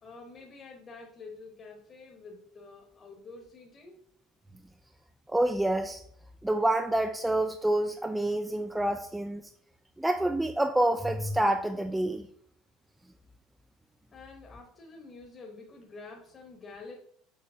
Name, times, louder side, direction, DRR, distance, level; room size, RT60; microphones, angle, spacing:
voice 1, 0.0-4.0 14.1-17.0, left 3 dB, 25° left, 1 dB, 1.1 m, -48 dB
voice 2, 5.3-6.0 6.4-9.4 10.0-12.3, right 1 dB, 5° right, 5 dB, 0.3 m, -27 dB
6.6 x 3.1 x 5.7 m, 0.64 s
cardioid pair, 170°, 0 cm